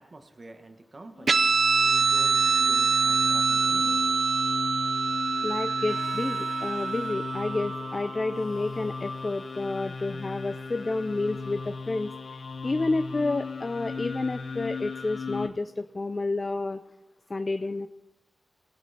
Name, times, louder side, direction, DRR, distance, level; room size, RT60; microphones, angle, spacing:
voice 1, 0.0-1.4 1.9-4.0, right 2 dB, 40° right, 6 dB, 1.3 m, -47 dB
sound 1, 1.2-15.5, left 5 dB, 70° left, 1.2 m, -36 dB
Guitar, 1.3-8.2, right 5 dB, 60° right, 0.4 m, -25 dB
voice 2, 5.4-16.8 17.3-17.9, left 2 dB, 35° left, 10 dB, 0.4 m, -30 dB
Harmonica, 5.9-13.8, right 1 dB, 10° right, 2.0 m, -53 dB
19.0 x 8.3 x 4.2 m, 0.98 s
wide cardioid pair, 90°, 0 cm